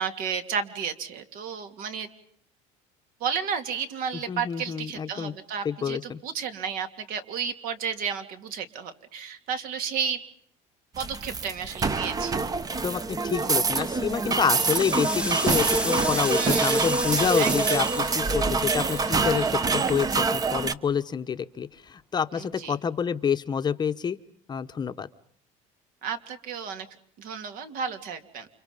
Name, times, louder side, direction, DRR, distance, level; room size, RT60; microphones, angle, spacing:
voice 1, 0.0-2.1 3.2-10.2 11.0-12.4 16.3-16.8 17.4-17.8 22.3-22.8 26.0-26.9 27.2-28.5, right 7 dB, 60° right, 8 dB, 3.1 m, -32 dB
voice 2, 4.3-5.3 5.6-6.2 12.8-24.2 24.5-25.1, left 7 dB, 25° left, 10 dB, 1.0 m, -28 dB
sound 1, 11.0-20.7, right 4 dB, 20° right, 1.1 m, -26 dB
sound 2, 13.2-13.6 14.1-20.4, right 1 dB, 5° right, 1.3 m, -33 dB
29.5 x 27.5 x 5.5 m, 0.64 s
cardioid pair, 130°, 16 cm